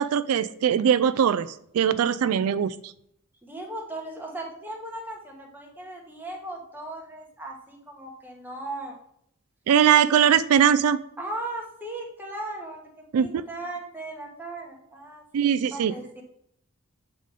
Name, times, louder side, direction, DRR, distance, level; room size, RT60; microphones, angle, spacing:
voice 1, 0.0-1.5 1.7-2.7 9.7-11.0 13.1-13.4 15.3-15.9, right 8 dB, 90° right, 14 dB, 0.3 m, -21 dB
voice 2, 3.4-9.0 11.2-15.2 15.7-16.2, right 2 dB, 10° right, 0 dB, 1.3 m, -37 dB
7.4 x 3.8 x 5.1 m, 0.73 s
head